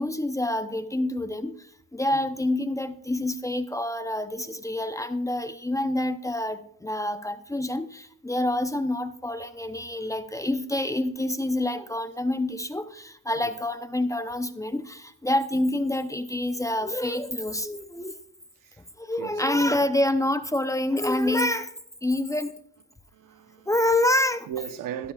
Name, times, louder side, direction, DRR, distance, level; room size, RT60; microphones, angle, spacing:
voice 1, 0.0-18.1 19.0-21.7 22.0-22.5 23.7-24.5, left 1 dB, 10° left, 0.7 m, -27 dB
voice 2, 19.2-19.7 23.1-23.7 24.5-25.1, right 10 dB, 65° right, 1.0 m, -37 dB
15.5 x 12.5 x 2.4 m
cardioid pair, 90°, 35 cm